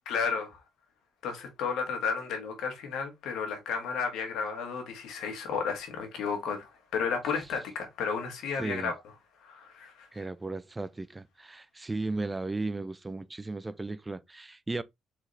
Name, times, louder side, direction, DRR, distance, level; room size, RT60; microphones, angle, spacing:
voice 1, 0.0-0.6 1.2-8.9 9.4-10.1, left 5 dB, 85° left, 1.5 m, -33 dB
voice 2, 8.6-8.9 10.1-14.8, right 3 dB, 20° right, 0.4 m, -35 dB
4.1 x 4.0 x 3.2 m
cardioid pair, 90°, 0 cm